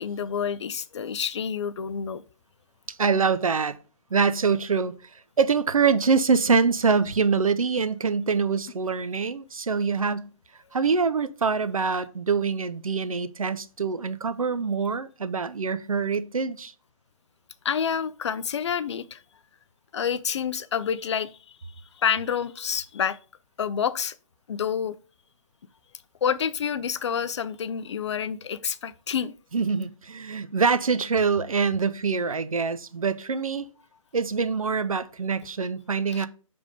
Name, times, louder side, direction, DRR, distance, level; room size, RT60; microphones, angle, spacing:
voice 1, 0.0-2.2 17.6-19.2 19.9-21.3 22.0-23.2 23.6-24.1 24.5-25.0 26.2-29.3 36.1-36.3, left 7 dB, 55° left, 0.5 m, -28 dB
voice 2, 3.0-3.8 4.1-4.9 5.4-10.3 10.7-16.7 29.5-33.7 34.1-36.3, right 5 dB, 85° right, 0.6 m, -24 dB
6.6 x 3.5 x 4.9 m
figure-of-eight pair, 140°, 17 cm